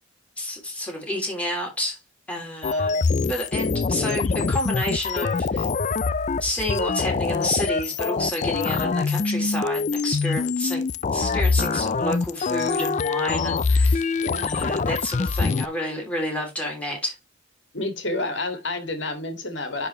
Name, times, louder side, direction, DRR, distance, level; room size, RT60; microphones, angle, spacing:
voice 1, 0.4-2.0 2.3-5.7 6.4-10.9 11.1-14.1 14.4-17.2, left 1 dB, 5° left, 3.1 m, -30 dB
sound 1, 2.6-15.7, left 4 dB, 35° left, 0.4 m, -24 dB
voice 2, 14.2-14.5 17.7-19.9, left 2 dB, 60° left, 2.2 m, -29 dB
10.0 x 4.4 x 3.2 m
head